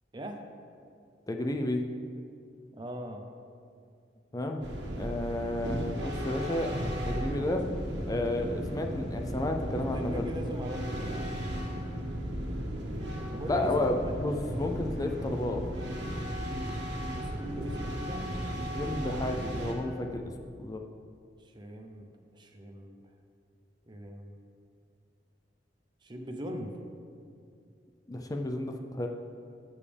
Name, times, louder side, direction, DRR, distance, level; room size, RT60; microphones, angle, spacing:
voice 1, 0.1-0.5 2.7-3.3 9.9-11.4 13.3-14.1 17.1-18.3 21.4-23.0 23.9-24.4 26.0-26.8, equal, 25° right, 3 dB, 0.6 m, -40 dB
voice 2, 1.3-1.8 4.3-4.6 4.9-6.7 7.0-7.7 8.1-10.3 13.5-15.6 18.7-20.2 20.6-20.8 28.1-29.1, left 1 dB, 20° left, 4 dB, 0.5 m, -31 dB
sound 1, 4.6-19.7, equal, 90° right, 1.7 m, -35 dB
13.5 x 7.2 x 3.4 m, 2.4 s
head